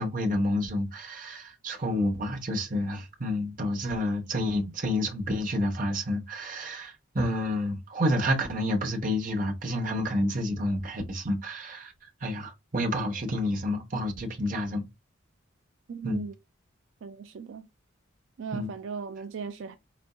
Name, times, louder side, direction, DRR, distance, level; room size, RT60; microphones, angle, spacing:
voice 1, 0.0-11.9 12.2-14.9 16.0-16.2 18.5-18.7, left 1 dB, 40° right, 1.0 m, -29 dB
voice 2, 15.9-16.4 17.0-17.7 18.4-19.8, right 6 dB, 65° right, 0.4 m, -37 dB
4.3 x 4.1 x 2.2 m
head